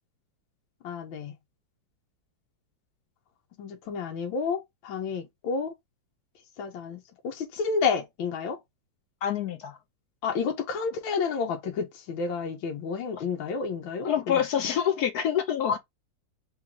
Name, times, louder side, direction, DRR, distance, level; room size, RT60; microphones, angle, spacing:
voice 1, 0.8-1.3 3.6-5.7 6.6-8.6 10.2-14.1, left 5 dB, 90° left, 1.6 m, -30 dB
voice 2, 9.2-9.8 13.2-13.3 14.0-15.8, left 9 dB, 65° left, 1.0 m, -26 dB
3.6 x 3.1 x 3.6 m
omnidirectional pair, 2.1 m